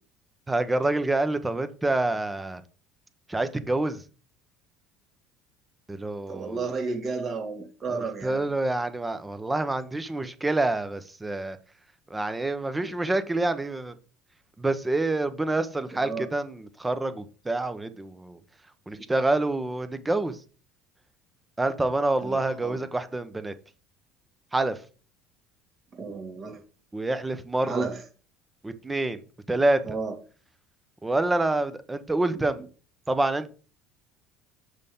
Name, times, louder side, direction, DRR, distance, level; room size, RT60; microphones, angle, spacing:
voice 1, 0.5-2.6 3.3-4.0 5.9-6.6 7.9-11.6 12.1-13.9 14.6-18.4 18.9-20.4 21.6-23.5 24.5-24.8 26.9-27.9 28.6-29.2 29.5-29.8 31.0-32.6 33.1-33.5, right 2 dB, 15° right, 0.9 m, -27 dB
voice 2, 6.3-8.4 15.9-16.3 22.2-22.8 25.9-26.6 27.6-28.0 29.8-30.1 32.3-32.5, right 4 dB, 45° right, 2.2 m, -32 dB
6.6 x 5.3 x 3.7 m
supercardioid pair, 90°, 0 cm